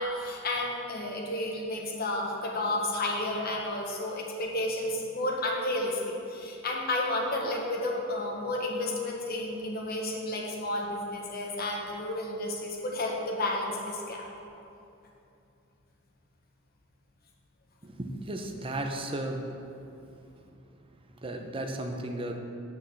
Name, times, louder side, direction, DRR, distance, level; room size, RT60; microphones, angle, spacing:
voice 1, 0.0-14.3, left 1 dB, 50° left, -1 dB, 1.4 m, -31 dB
voice 2, 17.8-19.5 21.2-22.4, right 1 dB, 25° right, 4 dB, 0.7 m, -34 dB
6.6 x 6.5 x 7.1 m, 2.7 s
head